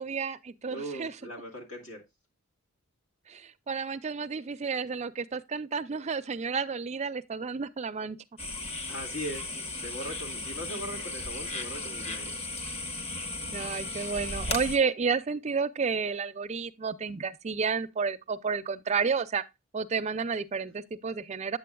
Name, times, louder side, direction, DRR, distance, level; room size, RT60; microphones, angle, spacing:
voice 1, 0.0-1.1 3.3-8.2 13.5-19.4 19.7-21.6, right 5 dB, 30° right, 0.4 m, -31 dB
voice 2, 0.7-2.0 8.9-12.4, equal, 70° left, 1.9 m, -40 dB
sound 1, 8.4-14.8, left 2 dB, 30° left, 0.9 m, -36 dB
8.8 x 7.6 x 2.2 m
head